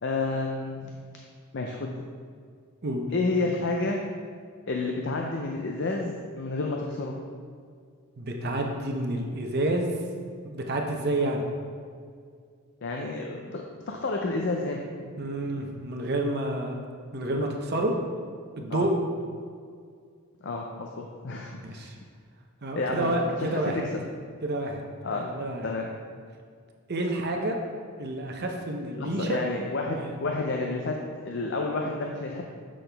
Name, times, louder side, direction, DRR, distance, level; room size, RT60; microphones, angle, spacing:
voice 1, 0.0-0.9 1.5-1.9 3.1-4.0 4.7-7.2 12.8-14.9 18.7-18.9 20.4-21.9 22.7-24.0 25.0-25.3 25.6-25.9 29.0-31.0 31.2-32.4, left 3 dB, 55° left, 1 dB, 0.5 m, -30 dB
voice 2, 8.2-9.9 10.4-11.4 15.2-16.8 17.1-17.9 18.6-18.9 21.6-21.9 22.6-23.8 24.4-24.8 25.1-25.7 26.9-27.6 28.0-29.4 30.0-30.2, right 1 dB, 45° right, 2 dB, 0.7 m, -29 dB
7.7 x 6.2 x 3.4 m, 2.1 s
head